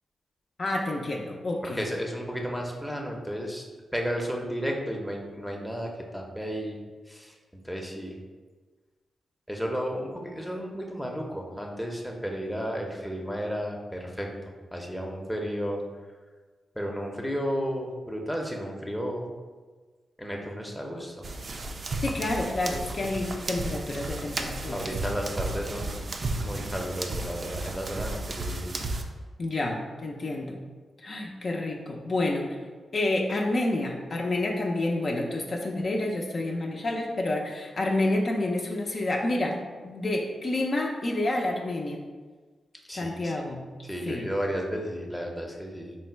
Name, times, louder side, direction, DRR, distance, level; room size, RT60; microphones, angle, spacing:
voice 1, 0.6-1.8 22.0-24.9 29.4-30.6 31.0-32.6 32.9-39.6 39.8-42.0 42.9-43.7 44.1-44.3, left 2 dB, 50° left, 0 dB, 0.5 m, -29 dB
voice 2, 1.6-3.6 3.9-6.8 7.1-8.2 9.5-14.3 14.7-15.8 16.8-19.3 20.2-21.3 24.7-26.1 26.4-28.7 42.9-43.6 43.8-46.0, equal, 5° left, 0 dB, 0.6 m, -33 dB
sound 1, 21.2-29.0, right 2 dB, 50° right, 0.4 m, -33 dB
3.8 x 2.1 x 4.4 m, 1.4 s
cardioid pair, 65°, 0 cm